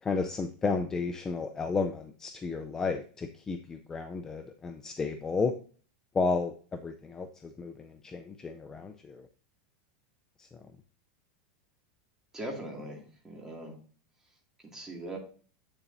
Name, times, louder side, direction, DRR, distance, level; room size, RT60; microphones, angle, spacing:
voice 1, 0.0-5.5 6.1-9.3 10.4-10.6, left 4 dB, 10° left, 7 dB, 0.5 m, -33 dB
voice 2, 12.3-13.7 14.7-15.2, right 1 dB, 10° right, 0 dB, 2.3 m, -40 dB
8.1 x 7.0 x 2.6 m, 0.42 s
supercardioid pair, 160°, 4 cm